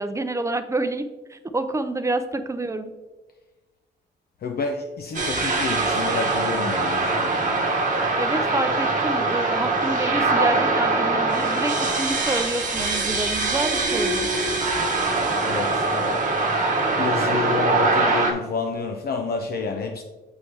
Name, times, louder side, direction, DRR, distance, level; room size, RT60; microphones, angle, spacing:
voice 1, 0.0-2.9 8.2-14.3, right 2 dB, 15° right, 9 dB, 0.5 m, -28 dB
voice 2, 4.4-7.7 15.4-16.3 17.0-20.0, left 4 dB, 60° left, 4 dB, 0.5 m, -29 dB
sound 1, 5.1-18.3, right 3 dB, 45° right, 1.0 m, -23 dB
6.9 x 4.5 x 3.3 m, 1.2 s
cardioid pair, 85°, 18 cm